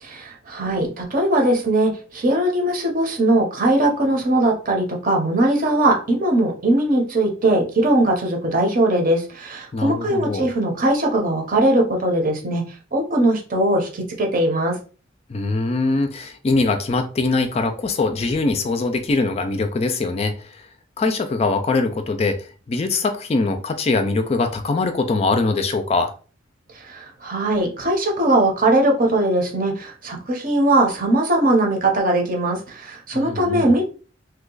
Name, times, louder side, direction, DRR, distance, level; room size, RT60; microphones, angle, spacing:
voice 1, 0.0-12.6 12.9-14.8 26.7-33.8, right 1 dB, 45° right, 0.8 m, -20 dB
voice 2, 9.7-10.5 15.3-20.7 21.0-26.1 33.1-33.7, left 3 dB, 30° left, 0.3 m, -22 dB
2.8 x 2.3 x 3.8 m
head